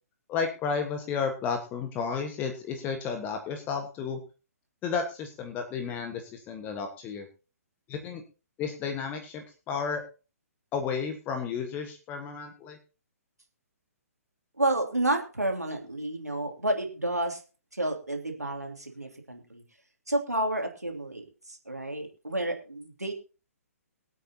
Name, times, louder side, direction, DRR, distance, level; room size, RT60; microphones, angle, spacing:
voice 1, 0.3-4.2 4.8-7.3 7.9-8.2 8.6-10.0 10.7-12.8, left 6 dB, 20° left, 5 dB, 1.6 m, -32 dB
voice 2, 14.6-17.4 17.7-19.6 20.1-23.1, right 1 dB, 90° right, 3 dB, 2.9 m, -30 dB
24.0 x 8.4 x 2.9 m, 0.33 s
figure-of-eight pair, 130°, 8 cm